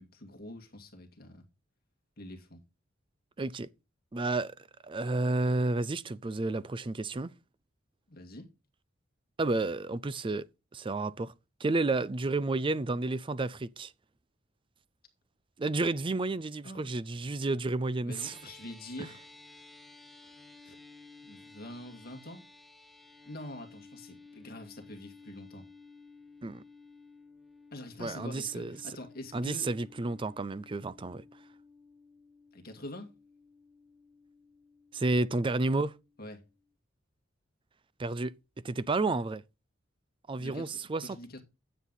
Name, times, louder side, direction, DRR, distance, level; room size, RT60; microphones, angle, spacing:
voice 1, 0.0-1.4 2.2-2.6 8.1-8.5 16.6-16.9 18.0-19.2 20.6-20.8 21.2-22.4 23.3-25.7 27.7-29.7 32.5-33.1 36.2-36.4 40.4-41.4, left 1 dB, 50° left, 2.1 m, -45 dB
voice 2, 3.4-3.7 4.1-4.5 4.8-7.3 9.4-10.5 10.7-11.3 11.6-13.9 15.6-18.4 19.0-19.1 26.4-26.6 28.0-28.8 29.3-31.2 34.9-35.9 38.0-38.3 38.6-39.4 40.3-41.2, right 2 dB, 25° right, 0.5 m, -31 dB
sound 1, 18.2-36.7, left 3 dB, ahead, 1.0 m, -55 dB
9.9 x 7.5 x 4.0 m
head